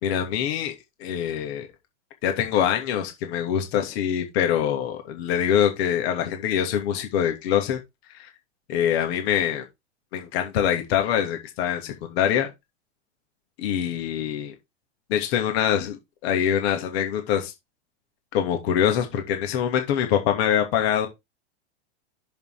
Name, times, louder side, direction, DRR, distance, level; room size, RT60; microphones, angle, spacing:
voice 1, 0.0-0.7 1.0-1.7 2.2-7.8 8.1-8.3 8.7-9.6 10.1-12.5 13.6-14.5 15.1-17.5 18.3-21.1, left 9 dB, 65° left, 2.8 m, -24 dB
7.1 x 5.4 x 5.1 m
hypercardioid pair, 110°, 34 cm